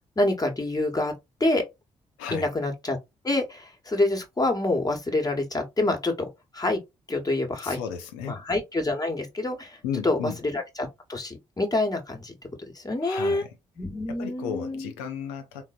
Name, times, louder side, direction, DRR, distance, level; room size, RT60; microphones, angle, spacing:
voice 1, 0.2-1.1 1.4-1.6 2.3-3.0 3.2-6.3 6.5-6.8 7.1-7.8 8.2-9.8 10.0-12.3 12.7-13.4 13.8-14.9, left 2 dB, 25° left, 1.1 m, -27 dB
voice 2, 2.2-2.5 7.6-8.4 9.8-10.4 13.0-13.6 14.1-15.6, left 7 dB, 80° left, 0.6 m, -34 dB
3.7 x 2.0 x 2.4 m
hypercardioid pair, 40°, 16 cm